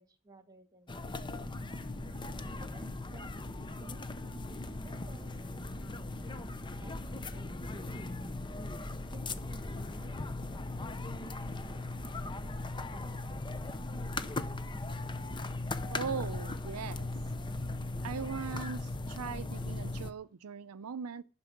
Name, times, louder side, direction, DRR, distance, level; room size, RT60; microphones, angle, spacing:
voice 1, 0.0-1.5 2.6-2.8 3.1-3.3 3.5-5.4 6.2-8.0 9.1-10.6 11.2-13.7, right 1 dB, 15° right, 2.1 m, -57 dB
sound 1, 0.9-20.1, left 2 dB, 20° left, 0.7 m, -38 dB
voice 2, 15.8-17.1 18.0-21.2, right 6 dB, 80° right, 0.5 m, -39 dB
11.5 x 6.1 x 6.5 m
head